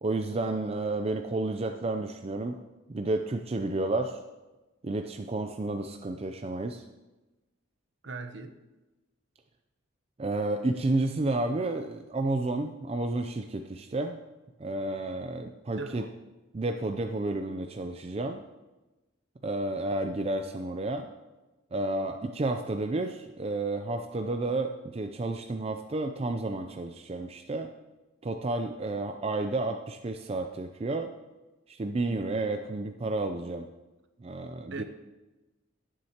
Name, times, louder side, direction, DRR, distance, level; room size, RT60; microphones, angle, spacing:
voice 1, 0.0-2.6 2.9-4.2 4.8-6.8 10.2-14.2 14.6-16.0 16.5-18.4 19.4-21.1 21.7-27.7 28.2-31.1 31.7-33.7 34.2-34.8, right 2 dB, 30° right, 6 dB, 0.4 m, -31 dB
voice 2, 8.0-8.6 15.8-16.1 34.7-34.8, right 3 dB, 60° right, 9 dB, 0.8 m, -38 dB
17.5 x 7.5 x 2.9 m, 1.1 s
head